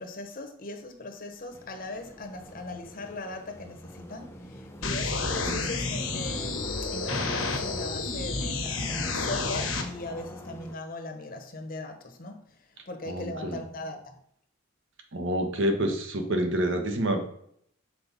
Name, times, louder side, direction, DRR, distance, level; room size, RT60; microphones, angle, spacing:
voice 1, 0.0-12.4 12.9-14.1, left 2 dB, 40° left, 0.9 m, -39 dB
sound 1, 1.5-10.8, left 1 dB, 10° left, 0.6 m, -44 dB
sound 2, 4.8-9.8, left 3 dB, 75° left, 1.2 m, -30 dB
voice 2, 13.1-13.6 15.1-17.2, right 1 dB, 65° right, 1.1 m, -28 dB
5.9 x 4.8 x 4.0 m
head